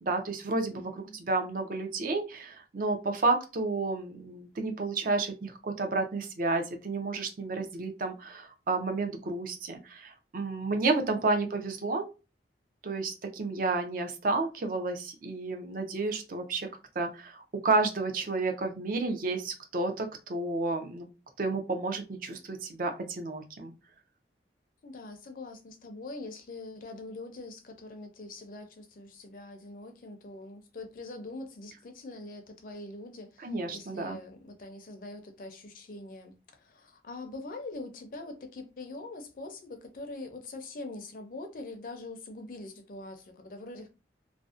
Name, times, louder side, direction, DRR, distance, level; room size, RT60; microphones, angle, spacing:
voice 1, 0.0-12.0 12.8-16.7 17.0-21.1 21.4-23.7 33.4-34.2, right 3 dB, 50° right, 0.4 m, -31 dB
voice 2, 0.7-1.2 11.1-11.5 24.8-43.9, left 2 dB, 50° left, 0.5 m, -43 dB
2.5 x 2.0 x 2.4 m
head